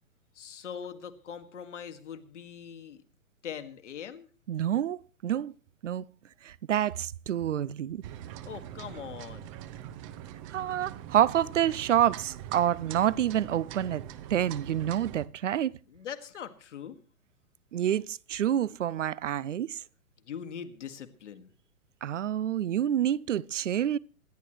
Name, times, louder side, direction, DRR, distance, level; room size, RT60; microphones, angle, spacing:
voice 1, 0.3-3.0 3.4-4.3 8.2-9.5 15.9-17.0 20.2-21.5, left 8 dB, 55° left, 2.0 m, -42 dB
voice 2, 4.5-5.5 5.8-6.0 6.4-8.0 10.5-14.0 14.3-15.8 17.7-19.8 22.0-24.0, right 11 dB, 60° right, 0.6 m, -28 dB
sound 1, 8.0-15.3, right 11 dB, 25° right, 0.8 m, -43 dB
27.0 x 11.0 x 3.1 m
figure-of-eight pair, 120°, 42 cm